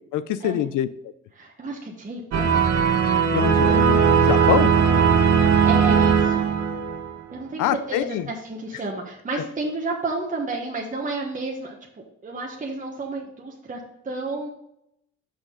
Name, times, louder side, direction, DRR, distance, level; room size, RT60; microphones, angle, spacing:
voice 1, 0.1-0.9 3.2-4.7 7.6-8.3 9.4-9.5, left 11 dB, 80° left, 15 dB, 0.6 m, -24 dB
voice 2, 1.3-2.5 4.8-5.1 5.6-6.5 7.3-11.8 12.2-14.5, right 2 dB, 25° right, -1 dB, 1.3 m, -31 dB
sound 1, 2.3-7.2, right 6 dB, 60° right, 1.3 m, -18 dB
6.4 x 6.1 x 3.8 m, 0.80 s
cardioid pair, 90°, 30 cm